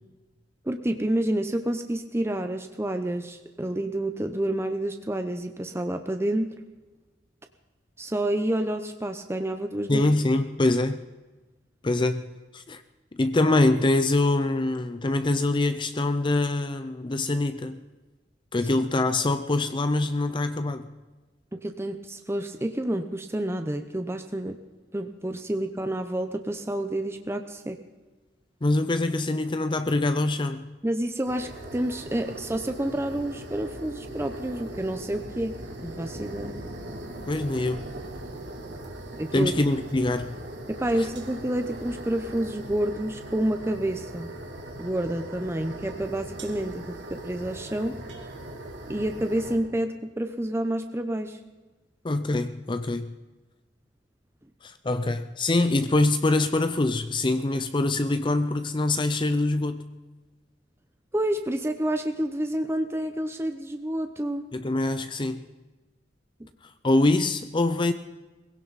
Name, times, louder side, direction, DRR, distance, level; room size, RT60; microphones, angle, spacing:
voice 1, 0.6-6.5 8.0-10.1 21.5-24.6 24.9-27.8 30.8-35.5 35.8-36.6 39.2-39.5 40.7-44.3 44.8-48.0 48.9-51.4 61.1-64.5, right 1 dB, 15° right, 0.7 m, -29 dB
voice 2, 9.9-11.0 11.8-12.3 12.5-12.8 13.1-17.8 18.5-20.9 28.6-30.7 37.3-37.9 39.3-40.4 41.0-41.1 52.0-53.1 54.6-59.8 64.5-65.5 66.6-67.9, left 2 dB, 25° left, 0.6 m, -24 dB
sound 1, 31.3-49.6, right 1 dB, 70° right, 2.7 m, -39 dB
21.5 x 16.5 x 4.1 m
head